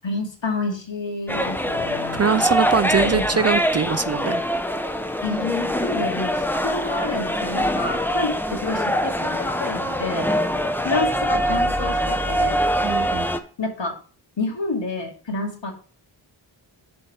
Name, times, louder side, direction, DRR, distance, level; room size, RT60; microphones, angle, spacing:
voice 1, 0.0-2.5 3.1-3.5 5.2-10.3 10.8-12.6 13.6-14.0 14.4-15.7, left 3 dB, 65° left, 2.5 m, -29 dB
sound 1, 1.3-13.4, equal, 5° left, 0.9 m, -23 dB
voice 2, 2.1-4.5 12.8-13.3, right 6 dB, 35° right, 0.4 m, -22 dB
7.4 x 4.6 x 6.1 m
cardioid pair, 50°, 47 cm